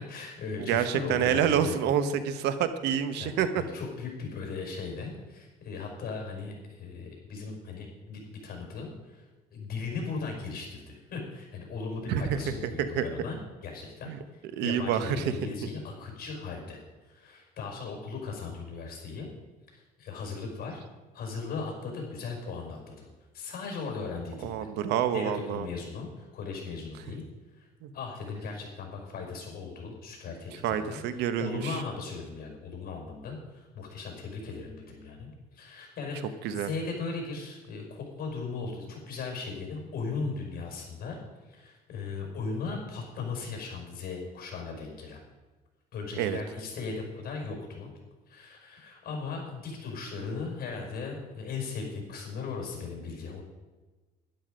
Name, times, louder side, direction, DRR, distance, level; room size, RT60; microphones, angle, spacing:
voice 1, 0.0-1.7 3.1-9.3 9.5-16.8 17.0-19.3 19.7-20.8 21.1-23.1 23.3-24.7 25.1-27.2 27.5-27.7 27.9-41.2 41.5-45.2 45.9-47.9 48.3-53.4, left 4 dB, 60° left, 1 dB, 5.3 m, -38 dB
voice 2, 0.7-3.5 12.1-12.4 12.8-13.0 14.1-14.2 14.5-15.2 24.4-25.7 27.8-27.9 30.6-31.8 36.4-36.7 46.2-46.4, right 9 dB, 85° right, 11 dB, 1.1 m, -27 dB
12.0 x 11.5 x 5.1 m, 1.3 s
cardioid pair, 110°, 17 cm